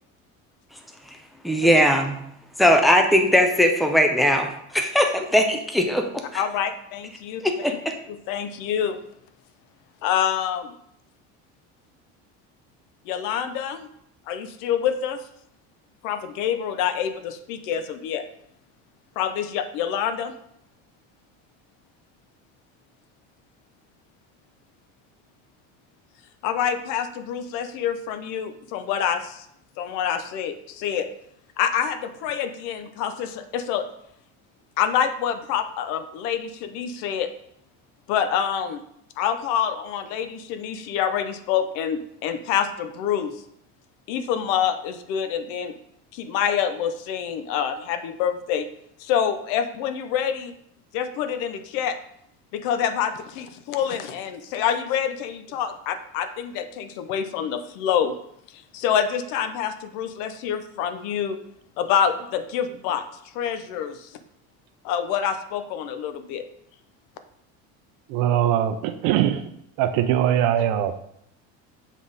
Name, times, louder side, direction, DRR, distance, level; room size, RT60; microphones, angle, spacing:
voice 1, 1.4-2.2 2.6-6.4 7.4-7.8, equal, ahead, 4 dB, 0.3 m, -19 dB
voice 2, 6.3-7.8 8.1-9.0 10.0-10.7 13.0-13.8 14.3-15.2 16.0-18.2 19.2-20.4 26.4-29.5 29.8-31.1 31.6-33.9 34.8-37.3 38.1-38.8 39.2-43.3 44.1-45.7 46.1-48.7 49.0-50.6 50.9-52.0 52.5-58.2 58.7-61.4 61.8-63.0 63.3-64.1 64.8-66.4, left 8 dB, 75° left, 10 dB, 0.7 m, -26 dB
voice 3, 68.1-69.4 69.8-70.9, right 10 dB, 65° right, 10 dB, 0.6 m, -21 dB
7.4 x 3.6 x 4.0 m, 0.73 s
cardioid pair, 165°, 31 cm